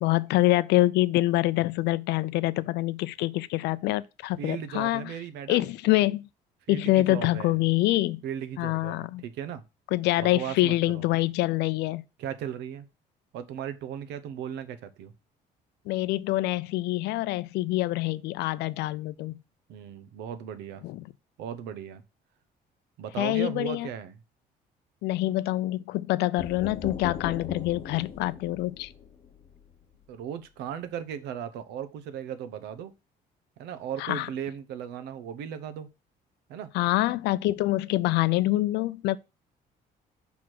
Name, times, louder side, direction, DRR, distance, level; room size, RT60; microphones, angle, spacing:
voice 1, 0.0-5.1 5.5-6.3 6.7-8.2 8.6-9.2 9.9-12.0 15.9-19.4 20.8-21.0 23.2-23.9 25.0-28.9 34.0-34.3 36.7-39.2, left 17 dB, 85° left, 0.5 m, -25 dB
voice 2, 4.4-5.7 6.7-7.5 8.2-9.6 10.2-11.0 12.2-12.9 13.3-15.1 19.7-20.8 21.4-22.0 23.0-24.2 30.1-32.9 33.6-35.9 36.5-36.7, right 9 dB, 85° right, 0.8 m, -37 dB
sound 1, 26.4-30.1, left 6 dB, 35° left, 0.9 m, -40 dB
6.2 x 3.6 x 6.0 m
cardioid pair, 110°, 17 cm